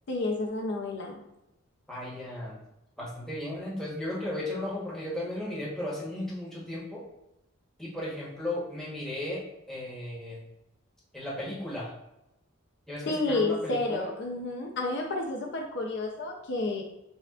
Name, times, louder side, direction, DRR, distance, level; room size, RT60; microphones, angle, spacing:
voice 1, 0.1-1.2 13.1-16.8, left 2 dB, 60° left, 1 dB, 0.5 m, -30 dB
voice 2, 1.9-2.6 3.0-7.0 7.8-10.4 11.1-11.9 12.9-14.1, left 1 dB, ahead, -7 dB, 1.1 m, -35 dB
6.8 x 2.4 x 2.4 m, 0.88 s
head